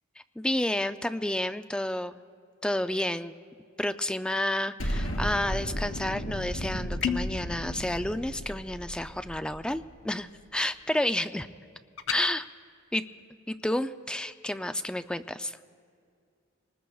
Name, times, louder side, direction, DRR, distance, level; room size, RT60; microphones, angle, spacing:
voice 1, 0.4-2.2 2.6-3.3 3.8-11.5 12.1-12.5 12.9-13.0 13.5-15.6, left 1 dB, 5° left, 10 dB, 0.3 m, -30 dB
Explosion, 4.8-10.0, equal, 85° left, 2.9 m, -34 dB
sound 1, 7.0-7.4 12.0-12.2, left 7 dB, 65° left, 0.6 m, -30 dB
25.0 x 20.0 x 2.3 m, 2.3 s
head